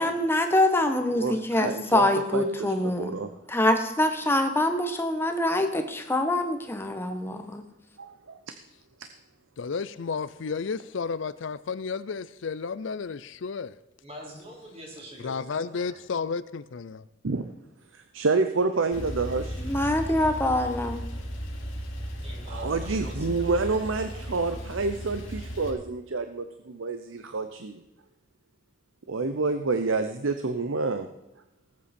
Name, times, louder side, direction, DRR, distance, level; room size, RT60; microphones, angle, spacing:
voice 1, 0.0-3.1 3.5-7.6 19.6-21.0, left 1 dB, 10° left, 1.1 m, -25 dB
voice 2, 1.1-2.0 2.3-2.4 2.8-3.3 7.1-7.2 8.0-8.6 17.2-17.5 17.9-19.7 22.5-27.8 29.1-31.1, right 3 dB, 85° right, 0.7 m, -28 dB
voice 3, 9.6-13.7 15.2-17.0, left 5 dB, 70° left, 0.5 m, -32 dB
voice 4, 14.0-16.0 22.2-23.7, equal, 30° right, 3.5 m, -45 dB
Male speech man speaking / Car / Idling, 18.9-25.7, equal, 90° left, 3.1 m, -35 dB
19.0 x 8.4 x 4.3 m
head